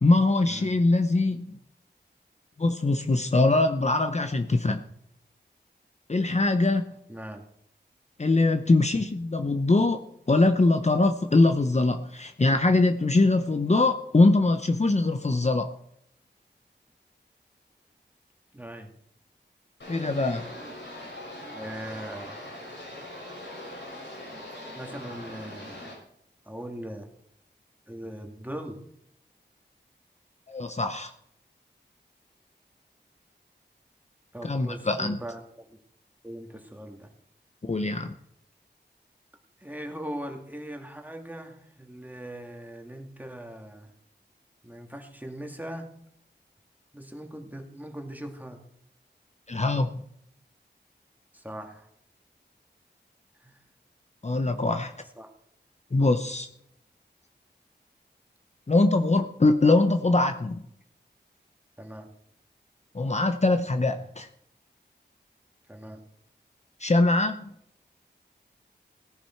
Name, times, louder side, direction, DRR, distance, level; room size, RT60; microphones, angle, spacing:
voice 1, 0.0-1.6 2.6-4.8 6.1-6.8 8.2-10.0 10.3-15.7 19.9-20.5 30.5-31.1 34.4-35.2 37.6-38.1 49.5-50.0 54.2-54.9 55.9-56.5 58.7-60.6 62.9-64.3 66.8-67.3, left 2 dB, 40° left, 7 dB, 0.8 m, -22 dB
voice 2, 7.1-7.4 18.5-18.9 21.5-22.4 24.4-26.0 26.4-27.1 27.9-28.8 34.3-35.8 36.2-37.1 39.6-43.9 44.6-45.9 46.9-48.6 51.3-51.9 53.4-53.6 55.2-55.3 61.8-62.1 65.7-66.0, right 1 dB, 10° right, 3 dB, 2.3 m, -40 dB
sound 1, 19.8-25.9, left 1 dB, 90° left, 6.3 m, -41 dB
17.0 x 10.0 x 4.5 m, 0.74 s
wide cardioid pair, 50°, 18 cm